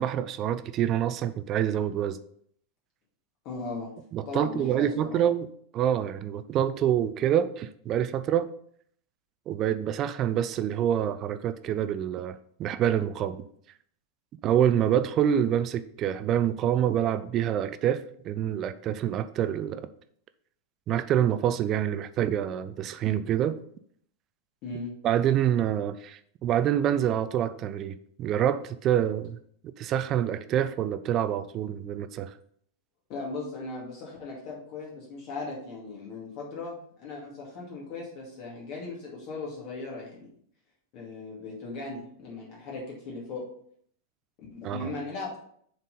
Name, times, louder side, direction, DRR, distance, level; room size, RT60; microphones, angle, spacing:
voice 1, 0.0-2.2 4.1-5.5 5.7-8.5 9.5-13.5 14.4-19.9 20.9-23.6 25.0-29.4 29.6-32.3 44.6-44.9, right 10 dB, 35° right, 0.5 m, -26 dB
voice 2, 3.4-3.9 4.3-5.2 24.6-24.9 33.1-40.3 40.9-43.4 44.5-45.4, left 3 dB, 40° left, 2.3 m, -38 dB
7.2 x 4.0 x 5.3 m
figure-of-eight pair, 90°, 0 cm